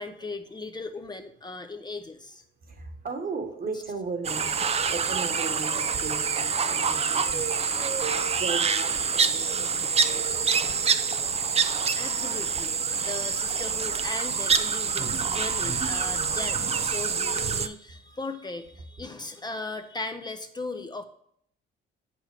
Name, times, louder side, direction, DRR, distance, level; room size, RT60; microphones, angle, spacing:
voice 1, 0.0-2.4 11.9-21.0, left 3 dB, 20° left, 7 dB, 0.8 m, -37 dB
voice 2, 2.7-4.6 4.9-7.8 8.3-10.8, right 4 dB, 45° right, 5 dB, 1.5 m, -37 dB
sound 1, 4.2-17.7, right 6 dB, 30° right, 0.5 m, -26 dB
7.9 x 7.0 x 3.5 m, 0.67 s
cardioid pair, 90°, 20 cm